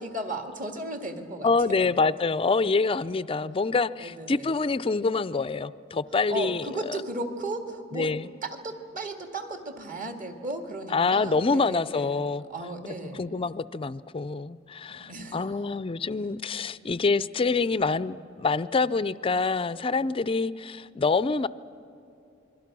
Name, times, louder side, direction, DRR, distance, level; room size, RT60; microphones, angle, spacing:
voice 1, 0.0-1.5 1.8-1.9 4.0-4.5 6.3-8.1 8.4-12.2 12.5-13.6 14.9-15.4, right 1 dB, 40° right, 5 dB, 2.0 m, -35 dB
voice 2, 1.4-7.0 7.9-8.3 10.9-12.4 13.1-21.5, left 4 dB, 25° left, 16 dB, 0.4 m, -26 dB
27.0 x 22.0 x 6.1 m, 2.8 s
head